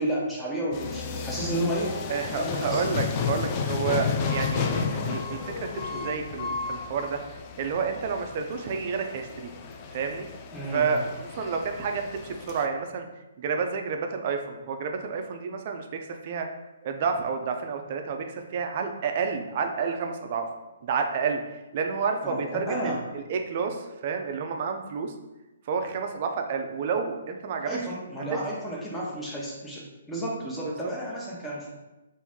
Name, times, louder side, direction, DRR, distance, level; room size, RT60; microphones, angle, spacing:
voice 1, 0.0-2.9 10.5-11.0 22.2-23.0 27.6-31.7, right 1 dB, 5° left, -6 dB, 0.8 m, -32 dB
sound 1, 0.7-12.7, left 5 dB, 30° left, 0.3 m, -32 dB
voice 2, 2.1-7.2 7.6-9.5 9.9-10.3 10.7-13.1 13.4-16.5 16.8-20.5 20.8-21.4 21.7-25.1 25.7-27.8 28.3-28.4 30.6-30.9, right 5 dB, 45° right, 5 dB, 0.4 m, -30 dB
3.0 x 2.6 x 3.5 m, 1.0 s
hypercardioid pair, 150°, 0 cm